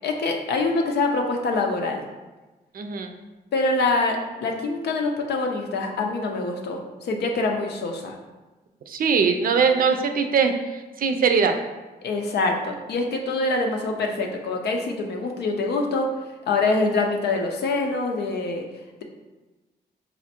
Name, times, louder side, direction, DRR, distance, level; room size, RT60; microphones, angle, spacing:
voice 1, 0.0-2.0 3.5-8.2 12.0-16.1 16.5-18.6, left 3 dB, 85° left, 2 dB, 0.6 m, -25 dB
voice 2, 2.7-3.2 8.9-11.5, right 5 dB, 60° right, 6 dB, 0.5 m, -21 dB
4.2 x 2.5 x 4.3 m, 1.2 s
cardioid pair, 100°, 17 cm